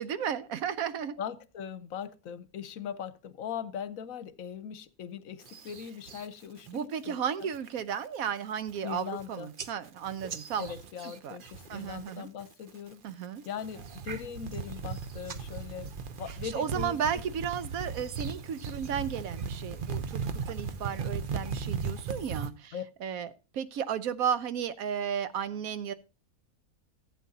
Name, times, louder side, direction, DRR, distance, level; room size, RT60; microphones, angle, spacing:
voice 1, 0.0-1.2 6.7-10.7 11.2-11.4 11.7-12.3 13.0-13.4 16.4-22.7 23.0-25.9, right 8 dB, 75° right, 1.1 m, -34 dB
voice 2, 1.2-7.5 8.8-9.5 10.6-13.0 13.5-17.2 22.7-22.8, left 8 dB, 70° left, 1.1 m, -40 dB
sound 1, 5.5-6.3 6.7-7.1 7.4-7.8 8.3-8.4 8.6-9.2 9.6-12.1 12.4-12.9 13.4-22.5, right 5 dB, 45° right, 0.8 m, -37 dB
15.0 x 8.2 x 2.7 m
omnidirectional pair, 1.5 m